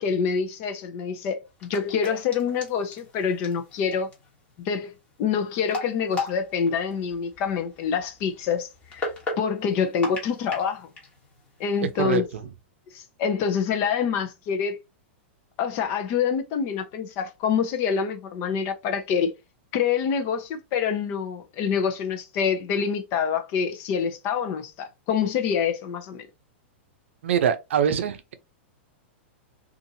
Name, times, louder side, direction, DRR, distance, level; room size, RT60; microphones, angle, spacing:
voice 1, 0.0-4.1 4.6-4.9 5.2-10.9 11.6-12.3 12.9-14.8 15.6-19.3 19.7-26.3, left 6 dB, 35° left, 0.6 m, -26 dB
sound 1, 1.5-12.2, left 3 dB, 20° left, 1.2 m, -38 dB
voice 2, 27.2-28.3, right 8 dB, 85° right, 0.5 m, -23 dB
2.7 x 2.5 x 2.7 m
supercardioid pair, 150°, 7 cm